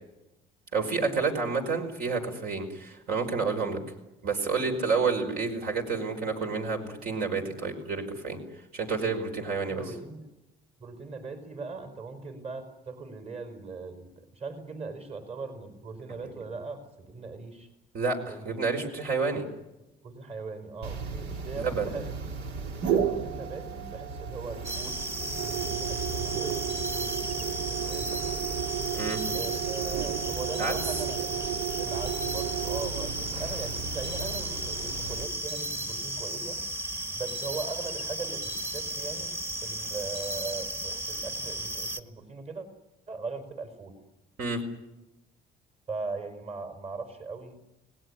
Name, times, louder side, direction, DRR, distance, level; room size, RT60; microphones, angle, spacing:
voice 1, 0.7-3.8 4.2-8.4 8.7-9.8 17.9-19.4 21.6-21.9 28.9-29.2 30.6-30.7 44.4-44.6, right 4 dB, 60° right, 4 dB, 5.1 m, -29 dB
voice 2, 9.7-10.3 10.8-17.7 18.3-18.9 20.0-22.3 22.9-25.1 25.4-28.2 29.3-36.6 37.1-42.7 43.1-44.0 45.9-47.6, right 4 dB, 35° right, 7 dB, 4.8 m, -40 dB
sound 1, 20.8-35.3, right 7 dB, 75° right, 2.7 m, -33 dB
sound 2, 24.6-42.0, right 1 dB, 15° right, 1.6 m, -35 dB
29.5 x 19.0 x 9.9 m, 0.99 s
cardioid pair, 110°, 17 cm